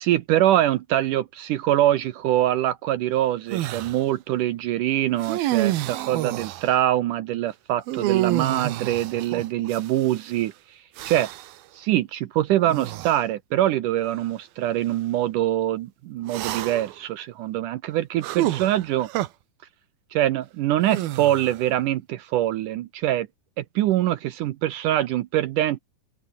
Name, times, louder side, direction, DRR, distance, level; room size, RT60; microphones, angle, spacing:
voice 1, 0.1-10.5 11.1-11.3 11.7-19.1 20.1-23.3 23.6-25.8, right 13 dB, 75° right, 2.2 m, -24 dB
sound 1, 3.5-4.0 5.2-6.7 7.9-10.2 11.0-11.6 12.7-13.2 14.0-14.2 16.3-17.0 18.2-19.3 20.8-21.7, right 15 dB, 90° right, 2.9 m, -28 dB
open air
omnidirectional pair, 4.2 m